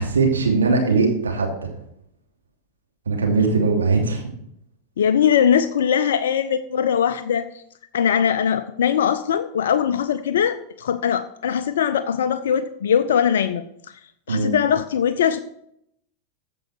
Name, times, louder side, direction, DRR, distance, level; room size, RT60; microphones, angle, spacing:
voice 1, 0.0-1.5 3.1-4.2 14.3-14.5, right 4 dB, 70° right, -1 dB, 2.8 m, -20 dB
voice 2, 5.0-7.5 7.9-13.6 14.3-15.4, left 8 dB, 60° left, 11 dB, 0.5 m, -21 dB
15.0 x 5.5 x 4.7 m, 0.74 s
figure-of-eight pair, 90°, 0 cm